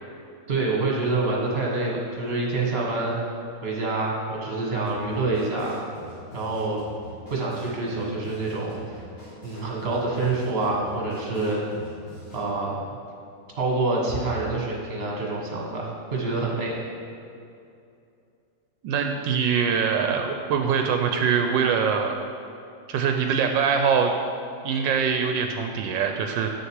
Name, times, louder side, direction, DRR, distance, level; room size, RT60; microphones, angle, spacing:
voice 1, 0.5-3.2 3.6-5.7 6.3-6.8 7.3-9.0 9.4-11.6 12.3-12.8 13.6-16.7, right 3 dB, 35° right, -2 dB, 1.6 m, -26 dB
sound 1, 4.9-12.5, left 1 dB, 45° left, 2.3 m, -45 dB
voice 2, 18.8-22.1 22.9-24.1 24.6-26.5, right 6 dB, 80° right, 4 dB, 1.3 m, -23 dB
8.5 x 6.6 x 4.7 m, 2.5 s
omnidirectional pair, 2.0 m